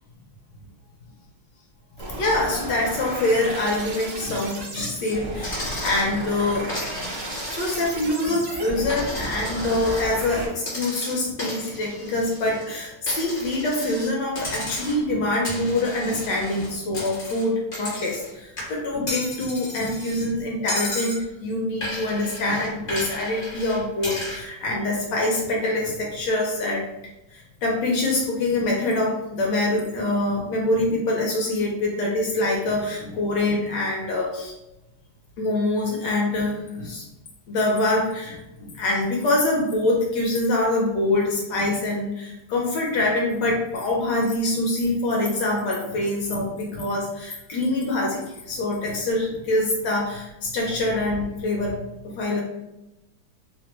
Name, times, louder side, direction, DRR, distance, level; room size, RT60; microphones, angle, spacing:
sound 1, 2.0-10.5, right 1 dB, 70° right, 0.8 m, -34 dB
voice 1, 2.2-6.7 7.5-26.8 27.3-34.5 35.4-37.1 37.5-52.4, left 2 dB, 70° left, -2 dB, 1.1 m, -25 dB
Coin (dropping), 5.4-6.1 6.7-8.0 8.4-10.1 10.6-12.7 13.1-14.1 14.4-15.1 15.4-18.3 18.6-20.3 20.7-21.2 21.8-24.4, left 1 dB, 45° left, 0.7 m, -34 dB
3.2 x 2.1 x 2.9 m, 0.94 s
omnidirectional pair, 2.2 m